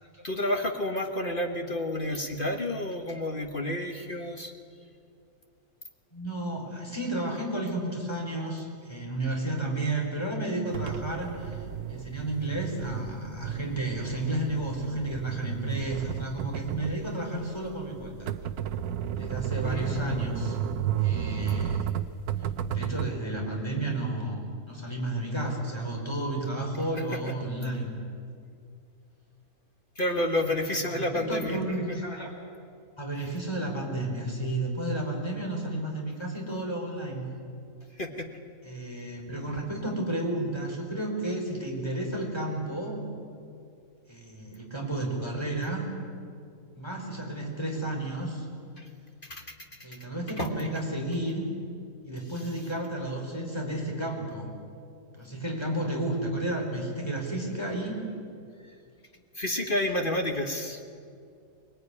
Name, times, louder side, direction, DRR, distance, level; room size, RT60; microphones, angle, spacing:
voice 1, 0.2-4.5 19.6-20.2 27.0-27.4 30.0-31.8 33.2-33.3 38.0-38.3 48.8-48.9 49.2-49.5 50.4-50.5 59.3-60.8, left 1 dB, 35° left, 4 dB, 1.5 m, -30 dB
voice 2, 6.1-18.3 19.2-20.6 21.0-21.9 22.7-27.9 30.7-32.3 33.0-37.4 38.6-43.0 44.1-45.9 46.7-48.5 49.8-51.5 52.0-54.5 55.1-58.0, right 1 dB, 15° left, 0 dB, 4.7 m, -32 dB
sound 1, 10.7-23.1, right 10 dB, 80° right, 1.3 m, -33 dB
23.5 x 20.5 x 9.8 m, 2.4 s
omnidirectional pair, 1.6 m